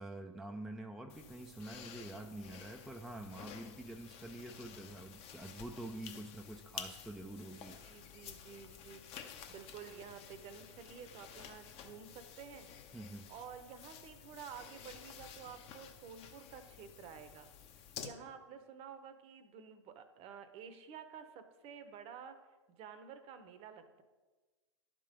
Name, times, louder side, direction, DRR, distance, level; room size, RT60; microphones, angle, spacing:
voice 1, 0.0-7.8 12.9-13.3, right 1 dB, ahead, 3 dB, 0.4 m, -47 dB
sound 1, 1.1-18.1, left 8 dB, 40° left, 0.9 m, -52 dB
voice 2, 7.8-12.7 13.3-22.4 22.7-24.0, right 7 dB, 35° right, 9 dB, 0.8 m, -51 dB
11.0 x 3.7 x 5.1 m, 1.3 s
hypercardioid pair, 110°, 16 cm